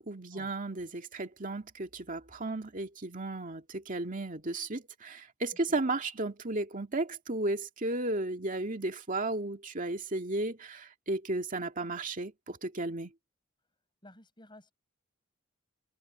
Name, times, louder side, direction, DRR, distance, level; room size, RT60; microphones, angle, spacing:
voice 1, 0.0-13.1, right 2 dB, 40° right, 2.1 m, -34 dB
voice 2, 14.0-14.7, left 1 dB, 25° left, 7.1 m, -54 dB
head